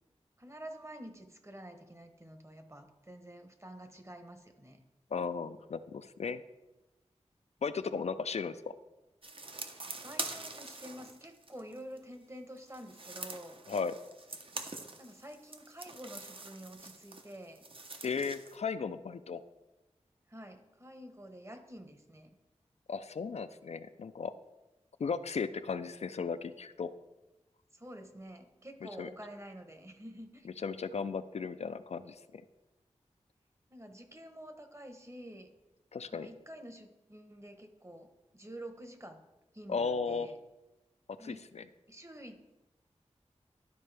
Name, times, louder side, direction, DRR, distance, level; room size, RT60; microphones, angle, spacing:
voice 1, 0.4-4.8 9.8-13.6 15.0-17.6 20.3-22.3 27.7-30.5 33.7-35.5 36.1-39.2 39.5-40.4 41.2-41.5 41.9-42.5, right 1 dB, 25° right, 6 dB, 1.0 m, -49 dB
voice 2, 5.1-6.4 7.6-8.6 13.7-13.9 18.0-19.4 22.9-24.3 25.0-26.9 28.8-29.1 30.6-32.4 35.9-36.3 39.7-40.3 41.2-41.6, left 5 dB, 65° left, 11 dB, 0.4 m, -36 dB
sound 1, 9.2-12.0 12.6-18.6, right 3 dB, 45° right, 0.8 m, -44 dB
12.0 x 4.3 x 3.3 m, 1.0 s
cardioid pair, 45°, 12 cm